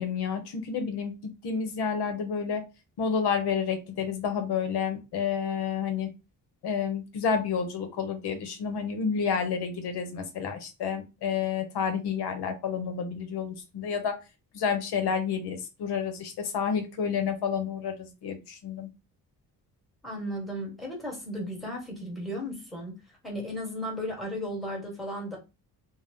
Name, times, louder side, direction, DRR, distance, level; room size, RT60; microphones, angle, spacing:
voice 1, 0.0-2.6 3.0-6.1 6.6-14.1 14.5-18.9, left 6 dB, 90° left, 6 dB, 0.7 m, -30 dB
voice 2, 20.0-22.9 23.2-25.4, equal, ahead, -2 dB, 1.3 m, -35 dB
2.6 x 2.0 x 3.4 m, 0.27 s
cardioid pair, 115°, 39 cm